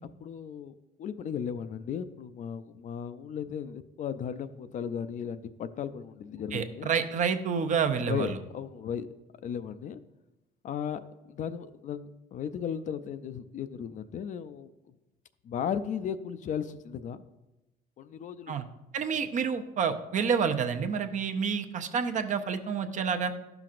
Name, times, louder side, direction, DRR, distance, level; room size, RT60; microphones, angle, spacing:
voice 1, 0.2-0.7 1.0-6.9 8.1-9.1 9.4-10.0 10.6-14.7 15.4-17.2 18.0-18.6 19.1-19.2, left 8 dB, 50° left, 12 dB, 0.4 m, -36 dB
voice 2, 6.5-8.4 18.5-18.6 18.9-23.3, right 6 dB, 45° right, 8 dB, 0.6 m, -29 dB
12.0 x 5.9 x 2.5 m, 1.0 s
cardioid pair, 110°, 17 cm